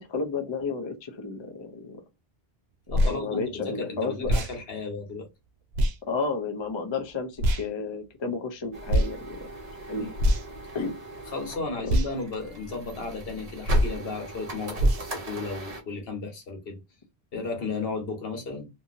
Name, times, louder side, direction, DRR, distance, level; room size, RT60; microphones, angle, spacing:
voice 1, 0.0-2.0 3.0-4.3 6.1-9.5 9.9-10.1 10.7-10.9, left 4 dB, 40° left, 0.4 m, -32 dB
voice 2, 2.9-5.3 10.0-10.1 11.3-16.8 17.3-18.7, left 3 dB, 70° left, 1.2 m, -34 dB
sound 1, 2.9-3.2 4.2-4.5 5.7-6.0 7.4-7.7 8.9-9.1 10.2-10.6 11.9-12.1 13.7-14.0 14.8-15.1, equal, 85° right, 0.9 m, -23 dB
sound 2, 8.7-15.8, right 2 dB, 45° right, 0.7 m, -40 dB
2.8 x 2.6 x 2.5 m
omnidirectional pair, 1.0 m